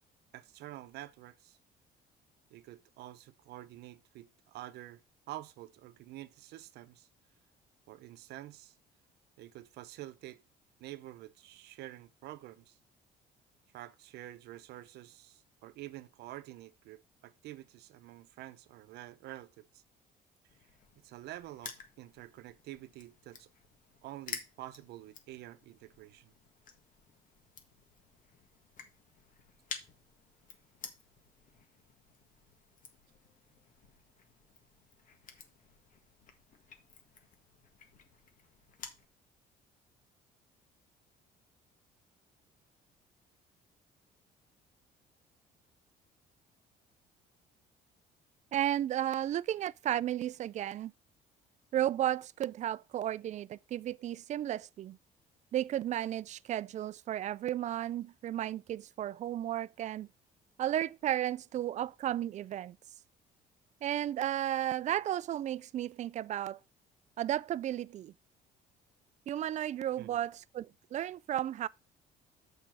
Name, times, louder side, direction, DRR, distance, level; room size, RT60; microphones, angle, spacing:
voice 1, 0.3-1.6 2.5-5.0 5.3-7.1 7.9-8.7 9.4-10.4 10.8-12.8 13.7-19.8 21.0-23.5 24.0-26.3 70.0-70.2, right 15 dB, 80° right, 0.8 m, -48 dB
Crushing, 20.5-39.1, left 6 dB, 50° left, 1.6 m, -51 dB
voice 2, 48.5-50.9 51.7-55.0 55.5-60.1 60.6-62.8 63.8-66.6 67.2-68.1 69.3-71.7, right 12 dB, 45° right, 0.4 m, -33 dB
6.8 x 5.3 x 6.0 m
cardioid pair, 110°, 17 cm